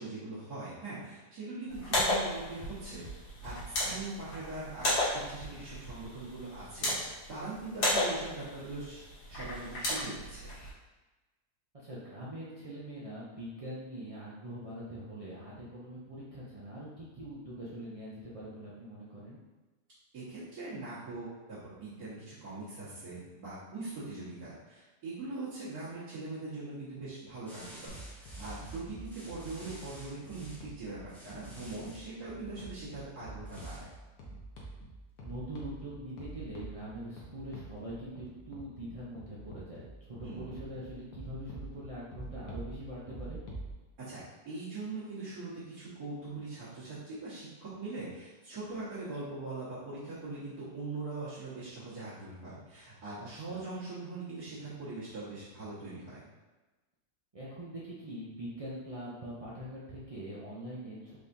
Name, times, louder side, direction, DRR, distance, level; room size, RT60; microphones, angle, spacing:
voice 1, 0.0-3.0 3.4-9.0 9.3-10.5 20.1-33.9 40.2-40.5 44.0-56.2, right 3 dB, 75° right, -13 dB, 1.9 m, -42 dB
sound 1, 1.7-10.7, left 1 dB, 90° left, 2.0 m, -34 dB
voice 2, 11.7-19.4 35.2-43.4 53.2-53.6 57.3-61.2, right 1 dB, 55° right, -8 dB, 0.4 m, -43 dB
sound 2, 27.5-30.6 31.1-32.1 33.4-33.9, equal, ahead, 0.5 m, -52 dB
sound 3, 27.9-43.7, right 2 dB, 70° left, 1.3 m, -47 dB
4.8 x 3.5 x 2.6 m, 1.2 s
omnidirectional pair, 1.7 m